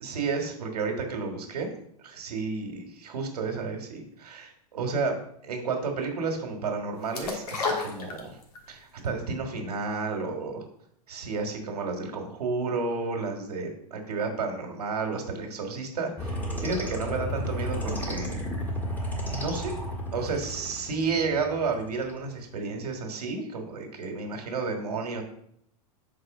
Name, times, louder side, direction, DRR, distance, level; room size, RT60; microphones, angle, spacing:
voice 1, 0.0-1.7 2.0-8.4 8.7-10.6 11.1-18.4 19.3-19.8 20.1-25.2, right 4 dB, 90° right, 3 dB, 1.6 m, -31 dB
sound 1, 7.1-8.7 9.0-9.1, left 4 dB, 80° left, 1.6 m, -30 dB
sound 2, 16.2-22.2, equal, 10° left, 1.6 m, -33 dB
4.7 x 4.3 x 5.9 m, 0.71 s
hypercardioid pair, 120°, 19 cm